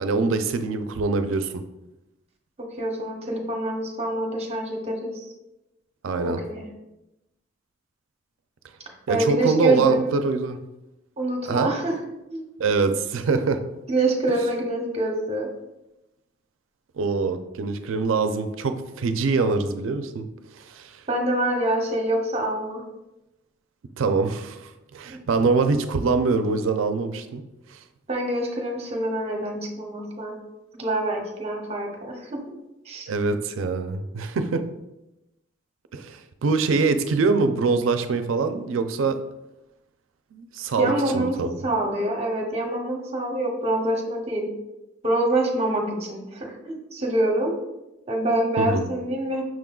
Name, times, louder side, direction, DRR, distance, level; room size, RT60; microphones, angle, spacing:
voice 1, 0.0-1.6 6.0-6.4 9.1-10.6 11.5-11.7 12.6-13.6 17.0-20.2 20.6-20.9 24.0-27.4 33.1-34.6 35.9-39.2 40.3-41.6 48.6-48.9, right 4 dB, 85° right, 8 dB, 0.4 m, -24 dB
voice 2, 2.8-5.3 6.2-6.7 9.1-10.2 11.2-11.9 12.3-12.5 13.9-15.5 21.1-22.8 25.1-25.2 28.1-30.3 30.8-32.4 32.9-33.1 40.8-41.4 41.6-44.5 45.0-47.5 48.1-49.4, right 1 dB, 35° right, 1 dB, 0.8 m, -25 dB
6.2 x 3.6 x 2.3 m, 0.95 s
head